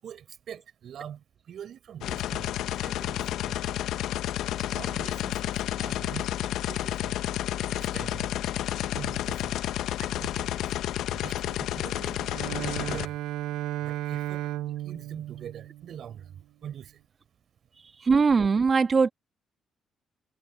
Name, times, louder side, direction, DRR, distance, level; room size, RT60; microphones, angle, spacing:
voice 1, 0.0-3.8 4.5-7.1 7.6-8.3 8.9-9.6 10.0-10.7 11.1-13.2 13.8-14.5 14.8-17.0, right 9 dB, 65° right, 5.9 m, -43 dB
sound 1, 2.0-13.1, left 12 dB, 85° left, 0.8 m, -31 dB
Bowed string instrument, 12.2-16.3, right 14 dB, 90° right, 0.6 m, -34 dB
voice 2, 18.0-19.1, right 5 dB, 40° right, 1.4 m, -21 dB
cardioid pair, 90°, 0 cm